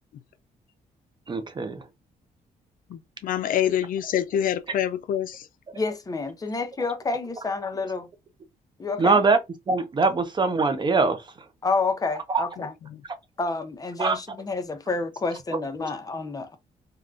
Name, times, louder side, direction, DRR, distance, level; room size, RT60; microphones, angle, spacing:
voice 1, 1.3-1.8 9.0-9.4 9.7-11.2 12.3-12.4 14.0-14.2, right 4 dB, 30° right, 0.6 m, -22 dB
voice 2, 2.9-5.4, left 10 dB, 70° left, 0.4 m, -26 dB
voice 3, 5.7-8.1 8.8-9.2 11.6-12.7 13.4-16.6, left 3 dB, 25° left, 0.6 m, -29 dB
3.5 x 2.2 x 2.4 m
cardioid pair, 110°, 15 cm